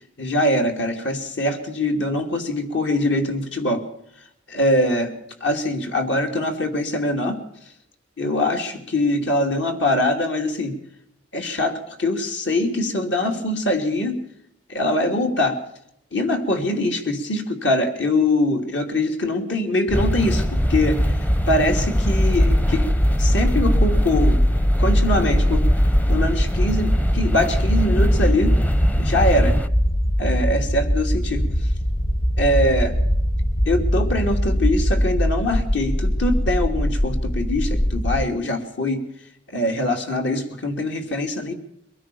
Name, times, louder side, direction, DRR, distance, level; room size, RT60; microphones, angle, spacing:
voice 1, 0.2-3.8 4.5-5.1 5.4-7.4 8.2-10.8 11.3-14.2 14.7-15.6 16.1-21.2 21.5-22.9 23.2-24.4 24.8-25.7 26.1-28.6 29.0-29.6 30.2-31.5 32.4-33.0 33.6-39.0 39.5-41.5, left 1 dB, 70° left, 4 dB, 3.0 m, -23 dB
sound 1, 19.9-38.3, equal, 30° left, 0.9 m, -21 dB
sound 2, 19.9-29.7, equal, 10° left, 0.7 m, -25 dB
23.0 x 16.0 x 7.0 m, 0.73 s
head